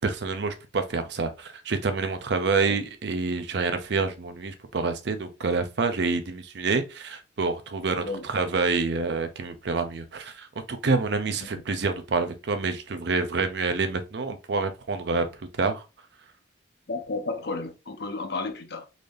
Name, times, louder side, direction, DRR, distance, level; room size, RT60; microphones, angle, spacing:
voice 1, 0.0-15.8, right 4 dB, 65° right, 0.6 m, -27 dB
voice 2, 16.9-18.9, left 3 dB, 65° left, 0.7 m, -32 dB
4.0 x 3.3 x 2.6 m
head